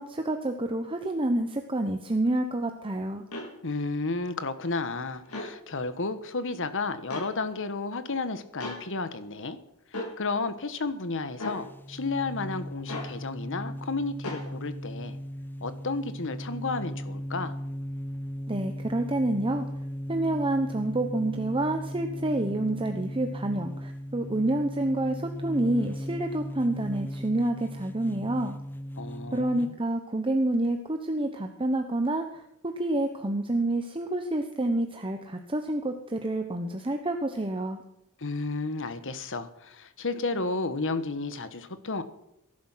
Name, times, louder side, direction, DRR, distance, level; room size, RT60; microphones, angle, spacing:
voice 1, 0.0-3.2 18.5-19.7 20.1-28.6 29.3-37.8, right 1 dB, 25° right, 5 dB, 1.0 m, -28 dB
sound 1, 3.3-3.5 5.2-5.5 7.1-7.3 8.6-8.8 9.9-10.1 11.4-11.6 12.9-13.1 14.2-14.5, left 2 dB, 85° left, 4.5 m, -35 dB
voice 2, 3.6-9.6 9.9-15.2 15.6-17.6 29.0-29.7 38.2-42.0, left 3 dB, 60° left, 11 dB, 1.4 m, -32 dB
sound 2, 11.5-29.7, equal, 10° left, 0.5 m, -37 dB
19.5 x 11.5 x 5.8 m, 0.82 s
head